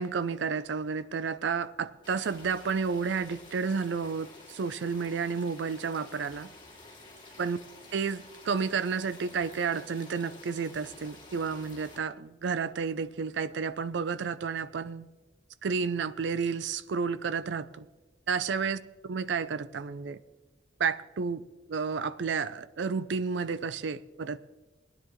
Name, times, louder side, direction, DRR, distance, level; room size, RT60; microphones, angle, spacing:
voice 1, 0.0-6.5 7.4-7.6 7.9-15.1 15.6-17.9 18.3-20.2 20.8-21.4 21.7-24.4, right 5 dB, 75° right, 0.4 m, -31 dB
sound 1, 2.0-12.0, left 2 dB, 25° left, 2.5 m, -51 dB
18.5 x 9.9 x 3.1 m
head